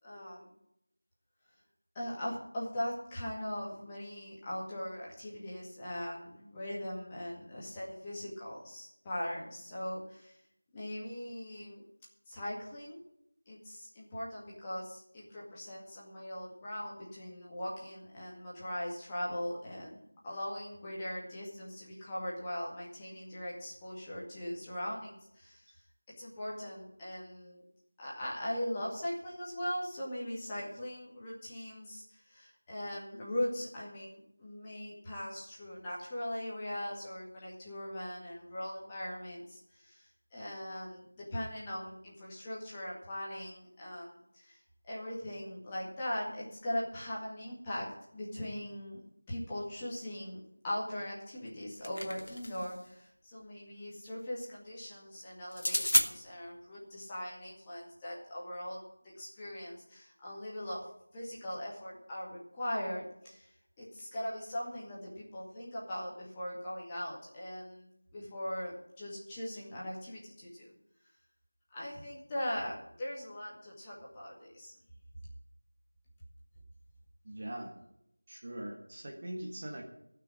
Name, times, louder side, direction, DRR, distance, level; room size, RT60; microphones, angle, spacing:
voice 1, 0.0-0.5 1.9-10.4 10.7-11.8 12.3-13.0 13.5-25.8 26.2-27.6 28.0-44.6 44.8-49.0 49.3-50.4 50.6-58.8 59.2-60.8 61.1-63.5 63.8-70.7 71.7-74.7, left 1 dB, 10° left, -7 dB, 2.1 m, -40 dB
sound 1, 51.5-52.8 55.5-56.1, left 1 dB, 70° left, 1.9 m, -30 dB
voice 2, 77.2-77.7 78.3-79.8, right 1 dB, 25° right, 1 dB, 1.6 m, -41 dB
15.5 x 6.1 x 9.8 m, 0.79 s
figure-of-eight pair, 175°, 0 cm